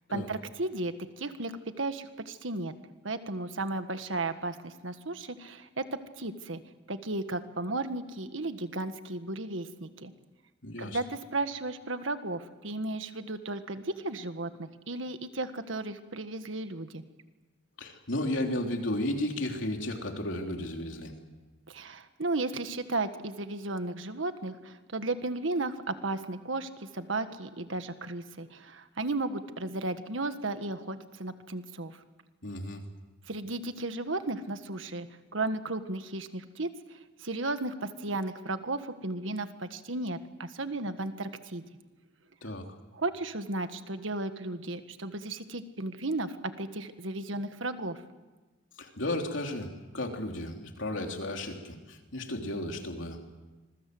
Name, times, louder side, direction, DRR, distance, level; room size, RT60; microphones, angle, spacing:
voice 1, 0.1-2.7 3.0-6.6 6.9-10.1 10.8-17.0 21.7-32.0 33.3-35.1 35.3-36.7 37.2-41.6 42.9-48.0, right 2 dB, 80° right, 9 dB, 1.6 m, -34 dB
voice 2, 10.6-11.0 17.8-21.1 32.4-32.8 42.4-42.6 48.8-53.4, left 1 dB, 75° left, 2 dB, 3.5 m, -34 dB
27.0 x 22.0 x 7.9 m, 1.2 s
head